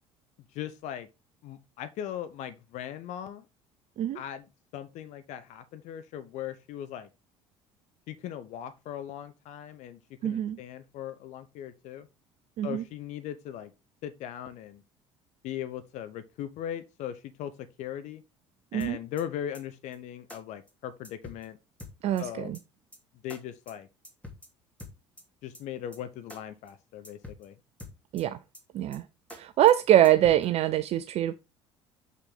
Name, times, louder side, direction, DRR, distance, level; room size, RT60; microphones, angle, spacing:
voice 1, 0.5-1.1 1.4-3.5 4.1-7.1 8.1-12.1 12.6-13.7 14.0-14.8 15.4-18.2 18.7-21.6 22.2-22.5 23.2-23.9 25.4-27.6, left 10 dB, 50° left, 0.8 m, -39 dB
voice 2, 10.2-10.6 12.6-12.8 18.7-19.0 22.0-22.6 28.1-28.4 28.7-29.0 29.3-31.3, right 12 dB, 45° right, 0.6 m, -23 dB
sound 1, 18.8-19.2 19.5-19.6 19.9-20.0 20.3-20.4 20.7-20.8 21.0-21.5 21.8-22.2 22.5-22.6 22.9-23.0 23.3-23.4 23.7-23.8 24.0-24.5 24.8-25.2 25.5-25.6 25.9-26.0 26.3-26.4 26.7-26.8 27.0-27.5 27.8-28.2 28.5-28.6 28.9-29.0 29.3-29.4 29.7-29.8 30.0-30.5, left 2 dB, 10° left, 3.0 m, -45 dB
8.0 x 5.8 x 3.7 m
figure-of-eight pair, 55°, 15 cm